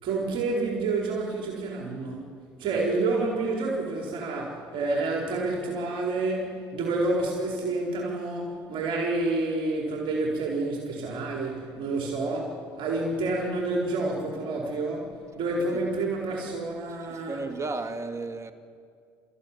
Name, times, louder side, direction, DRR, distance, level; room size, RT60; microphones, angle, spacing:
voice 1, 0.0-2.3 2.6-17.4, right 2 dB, 65° right, -1 dB, 4.4 m, -29 dB
voice 2, 17.1-18.5, right 3 dB, 30° right, 7 dB, 2.5 m, -34 dB
27.0 x 15.0 x 9.9 m, 2.2 s
supercardioid pair, 70°, 9 cm